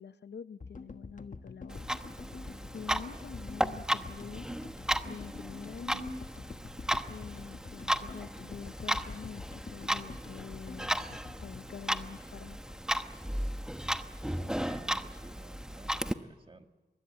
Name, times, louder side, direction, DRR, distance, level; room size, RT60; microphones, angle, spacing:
voice 1, 0.0-1.9 2.3-4.5 5.0-6.1 7.1-11.0 11.4-12.8, left 6 dB, 90° left, 14 dB, 0.8 m, -46 dB
sound 1, 0.6-12.9, left 4 dB, 50° left, 1.3 m, -47 dB
Clock, 1.7-16.1, equal, 5° right, 1.0 m, -35 dB
voice 2, 14.3-16.7, right 2 dB, 30° right, 6 dB, 1.6 m, -54 dB
24.0 x 21.0 x 8.8 m, 1.3 s
wide cardioid pair, 100°, 17 cm